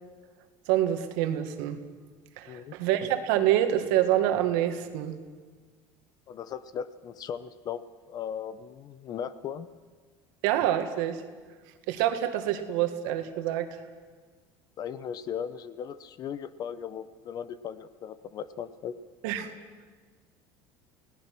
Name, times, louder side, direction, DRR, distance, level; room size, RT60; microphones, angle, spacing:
voice 1, 0.7-1.8 2.4-5.2 10.4-11.2 11.9-13.8 19.2-19.5, right 12 dB, 85° right, 7 dB, 2.0 m, -26 dB
voice 2, 6.3-9.7 14.8-18.9, left 8 dB, 40° left, 15 dB, 0.9 m, -37 dB
30.0 x 18.0 x 6.2 m, 1.5 s
cardioid pair, 145°, 11 cm